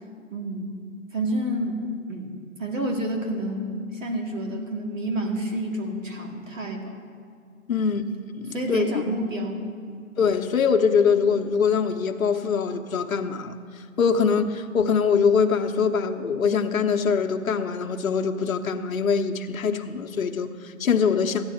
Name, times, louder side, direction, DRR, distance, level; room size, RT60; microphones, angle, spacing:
voice 1, 0.3-0.8 1.1-2.3 2.6-7.0 7.7-8.0 8.5-10.1 14.2-14.4, right 1 dB, 65° right, 2 dB, 2.1 m, -29 dB
voice 2, 7.7-8.0 8.4-9.0 10.2-13.5 14.0-21.4, left 6 dB, 75° left, 5 dB, 1.0 m, -23 dB
15.0 x 9.6 x 4.4 m, 2.2 s
hypercardioid pair, 175°, 42 cm